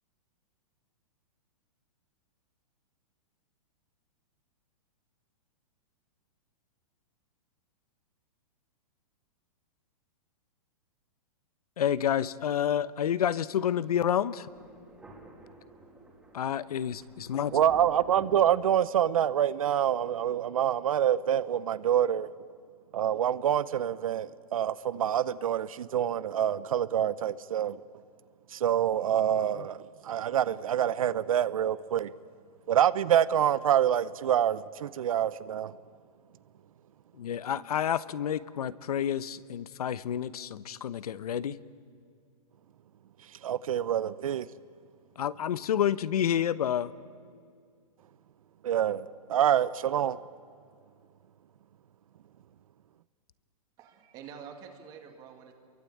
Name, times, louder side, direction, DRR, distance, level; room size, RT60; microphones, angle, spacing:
voice 1, 11.8-14.5 16.3-17.5 37.2-41.6 45.2-46.9, left 9 dB, 75° left, 1.0 m, -29 dB
Thunder, 14.5-19.3, right 2 dB, 5° right, 2.7 m, -51 dB
voice 2, 17.5-22.3 22.9-27.8 28.5-29.8 30.0-32.1 32.7-35.7 43.4-44.5 48.6-50.2, right 10 dB, 65° right, 0.7 m, -26 dB
voice 3, 53.8-55.5, right 7 dB, 20° right, 2.1 m, -47 dB
28.0 x 23.0 x 8.6 m
hypercardioid pair, 175°, 19 cm